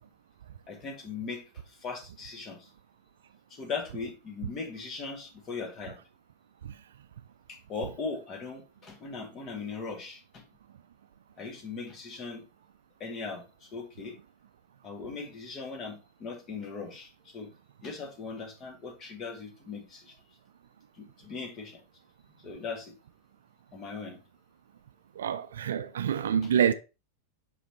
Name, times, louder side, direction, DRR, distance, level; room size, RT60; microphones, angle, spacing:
voice 1, 0.7-2.7 3.5-6.0 7.5-10.4 11.4-12.4 13.0-14.2 14.8-17.5 17.8-20.2 21.0-21.8 22.4-22.9 23.7-24.2 26.4-26.5, left 4 dB, 30° left, 1.8 m, -39 dB
voice 2, 25.2-26.7, right 8 dB, 60° right, 0.5 m, -27 dB
6.3 x 4.9 x 3.1 m
figure-of-eight pair, 90°, 0 cm